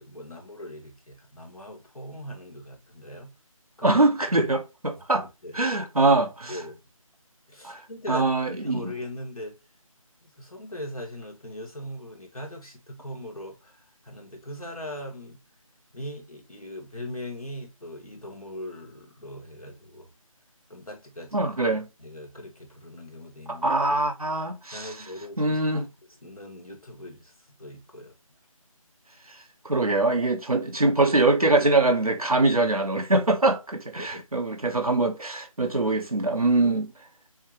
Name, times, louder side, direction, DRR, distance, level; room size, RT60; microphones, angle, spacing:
voice 1, 0.0-3.3 3.8-4.0 4.9-5.6 6.5-6.8 7.5-9.6 10.2-15.4 15.9-20.1 20.7-21.4 22.0-23.7 24.0-24.1 24.7-25.6 26.2-27.3 27.6-28.1 34.0-34.2 35.6-35.7 36.6-36.8, left 1 dB, 85° left, 2.1 m, -40 dB
voice 2, 3.8-5.2 5.5-6.6 7.6-7.8 8.1-8.9 21.3-21.9 23.5-24.9 25.4-25.9 29.6-36.9, right 2 dB, 90° right, 1.2 m, -23 dB
6.3 x 2.6 x 3.1 m
figure-of-eight pair, 160°, 18 cm